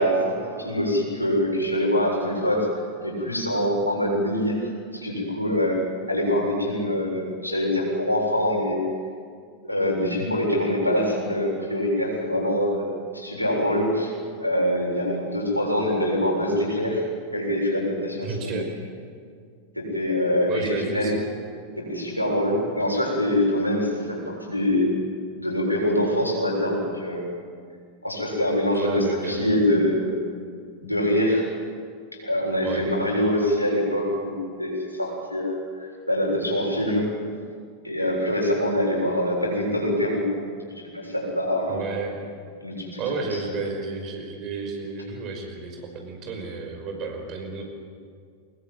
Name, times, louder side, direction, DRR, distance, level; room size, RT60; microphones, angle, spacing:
voice 1, 0.0-2.7 3.0-5.8 6.1-8.8 9.6-12.8 13.1-14.1 14.4-17.0 17.3-18.6 19.8-21.1 21.8-25.0 25.4-27.2 28.0-30.1 30.8-31.4 32.2-37.1 37.8-40.3 40.8-41.8 42.6-43.0 43.3-43.4, left 1 dB, 90° left, -2 dB, 7.2 m, -24 dB
voice 2, 18.2-18.7 20.5-21.2 28.7-29.6 32.6-32.8 41.7-42.2 43.0-47.6, right 4 dB, 35° right, 3 dB, 5.6 m, -32 dB
25.0 x 20.5 x 9.3 m, 2.1 s
figure-of-eight pair, 90°, 0 cm